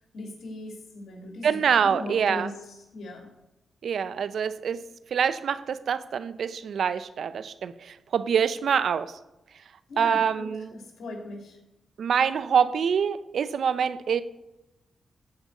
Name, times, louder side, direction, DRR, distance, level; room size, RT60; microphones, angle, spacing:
voice 1, 0.1-3.3 9.9-11.6, left 2 dB, 80° left, 1 dB, 3.1 m, -39 dB
voice 2, 1.4-2.5 3.8-4.8 5.1-9.1 10.0-10.7 12.0-14.2, right 7 dB, 75° right, 14 dB, 0.6 m, -25 dB
14.5 x 5.2 x 8.1 m, 0.93 s
cardioid pair, 60°, 0 cm